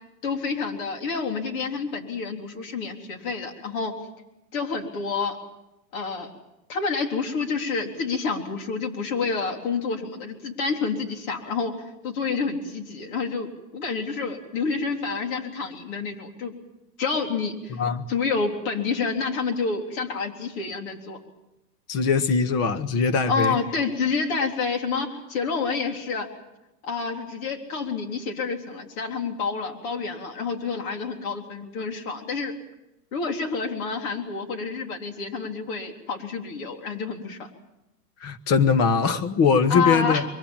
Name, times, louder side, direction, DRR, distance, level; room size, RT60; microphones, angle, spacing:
voice 1, 0.2-3.9 4.5-5.4 5.9-6.3 6.7-11.7 12.0-13.5 13.7-16.5 17.0-17.8 18.1-21.2 23.3-26.3 26.8-32.5 33.1-37.5 39.7-40.3, left 5 dB, 55° left, 4 dB, 4.0 m, -28 dB
voice 2, 21.9-23.6 38.2-40.2, left 5 dB, 30° left, 12 dB, 1.3 m, -21 dB
23.5 x 23.5 x 7.4 m, 0.92 s
supercardioid pair, 140°, 48 cm